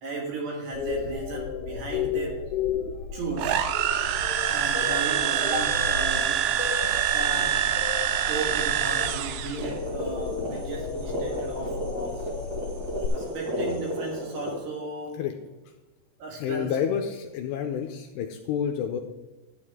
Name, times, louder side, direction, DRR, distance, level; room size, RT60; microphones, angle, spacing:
voice 1, 0.0-2.5 3.1-3.7 4.5-6.7 7.1-7.7 8.3-12.3 13.1-15.3 16.2-16.8, right 3 dB, 60° right, -2 dB, 4.0 m, -35 dB
sound 1, 0.7-13.1, left 7 dB, 70° left, 2.8 m, -34 dB
sound 2, 3.4-9.7, right 9 dB, 80° right, 2.6 m, -25 dB
sound 3, 9.5-14.6, equal, 45° right, 1.2 m, -33 dB
voice 2, 16.4-19.0, left 8 dB, 85° left, 4 dB, 2.5 m, -29 dB
12.0 x 9.8 x 3.7 m, 1.1 s
omnidirectional pair, 5.5 m